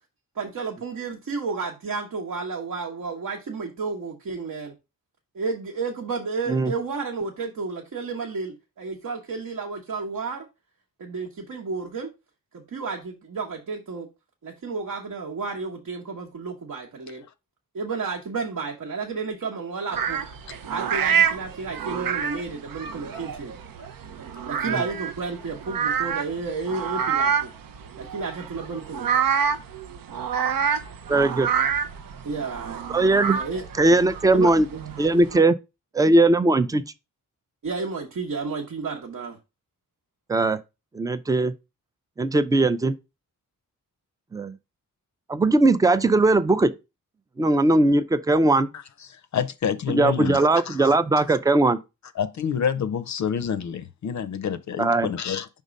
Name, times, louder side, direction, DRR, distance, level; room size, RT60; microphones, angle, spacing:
voice 1, 0.4-4.7 5.3-10.4 11.0-12.1 12.5-14.1 14.4-17.2 17.7-20.2 20.7-23.5 24.5-27.5 28.0-29.1 32.2-32.8 33.3-33.6 34.3-35.0 37.6-39.4, right 4 dB, 60° right, 1.0 m, -32 dB
sound 1, 19.9-35.4, right 7 dB, 85° right, 0.7 m, -27 dB
voice 2, 31.1-31.5 32.9-33.4 33.8-34.7 35.0-35.5 35.9-36.8 40.3-40.6 40.9-41.5 42.2-42.9 44.3-44.5 45.3-46.7 47.4-48.7 49.9-51.8 54.8-55.1, right 2 dB, 10° right, 0.3 m, -19 dB
voice 3, 49.3-51.0 52.2-55.5, left 7 dB, 55° left, 0.5 m, -28 dB
5.4 x 3.6 x 5.0 m
wide cardioid pair, 145°, 34 cm